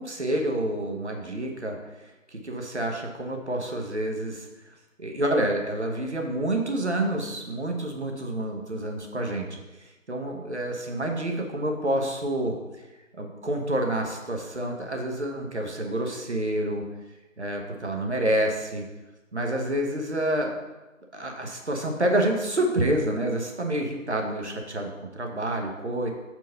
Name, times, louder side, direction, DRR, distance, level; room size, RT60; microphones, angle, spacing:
voice 1, 0.0-1.8 2.0-12.5 13.2-16.8 17.4-18.8 19.3-20.5 21.1-26.1, right 1 dB, 55° right, 2 dB, 1.2 m, -28 dB
5.0 x 4.7 x 5.3 m, 1.1 s
figure-of-eight pair, 170°, 41 cm